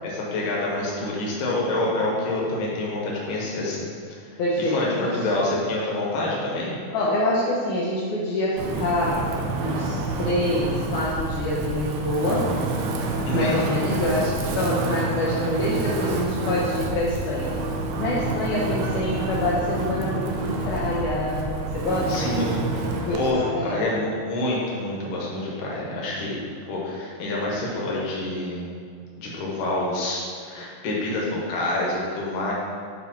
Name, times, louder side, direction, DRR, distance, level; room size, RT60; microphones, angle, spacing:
voice 1, 0.0-3.9 4.2-6.7 13.3-13.6 22.1-22.8 23.1-26.4 26.7-28.7 29.2-32.5, left 2 dB, 65° left, -4 dB, 2.3 m, -27 dB
voice 2, 4.4-5.3 6.9-9.3 9.6-12.5 13.3-17.5 18.0-22.5 23.1-23.2 23.5-23.8, left 1 dB, 80° left, -7 dB, 1.8 m, -26 dB
Wind, 8.6-23.3, right 3 dB, 90° right, 2.7 m, -28 dB
9.5 x 3.3 x 4.5 m, 2.1 s
omnidirectional pair, 4.6 m